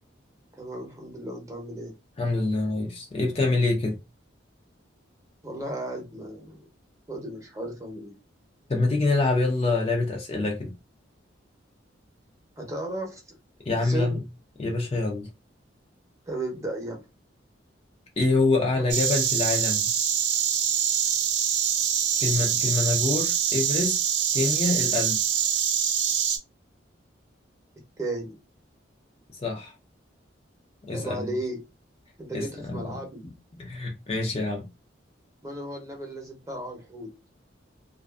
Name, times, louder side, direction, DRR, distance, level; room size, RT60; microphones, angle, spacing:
voice 1, 0.5-1.9 5.4-6.7 7.1-8.2 12.6-13.4 13.8-14.2 16.3-17.0 18.8-18.9 28.0-28.4 30.9-31.6 32.2-33.3 35.4-37.2, right 1 dB, 15° right, 0.7 m, -35 dB
voice 2, 2.2-4.0 8.7-10.7 13.7-14.2 14.6-15.3 18.2-19.9 22.2-24.0 24.3-25.2 29.4-29.7 30.8-31.3 32.3-33.0 33.5-34.7, left 3 dB, 30° left, 0.5 m, -26 dB
Insect, 18.9-26.4, right 8 dB, 60° right, 0.5 m, -25 dB
2.5 x 2.3 x 2.3 m
head